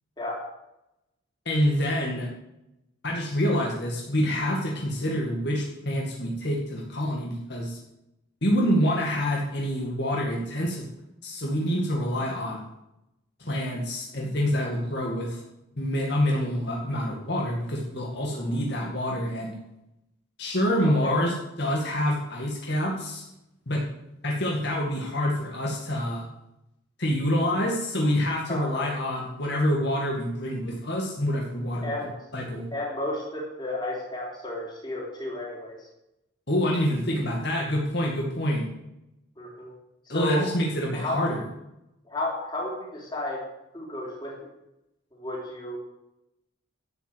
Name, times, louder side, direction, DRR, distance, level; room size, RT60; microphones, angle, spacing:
voice 1, 1.5-2.3 3.0-7.8 8.4-10.8 11.2-12.6 13.4-15.4 15.8-19.5 20.4-23.2 23.7-23.8 24.2-26.2 27.0-31.9 32.3-32.7 36.5-38.7 40.1-41.4, equal, 55° left, -2 dB, 2.2 m, -27 dB
voice 2, 18.3-18.6 21.0-21.2 28.5-28.9 31.8-32.1 32.7-35.8 39.4-39.7 40.1-40.5 40.9-41.3 42.1-43.5 43.7-44.4 45.1-45.8, left 1 dB, 20° left, -3 dB, 4.0 m, -32 dB
12.0 x 8.0 x 8.0 m, 0.88 s
head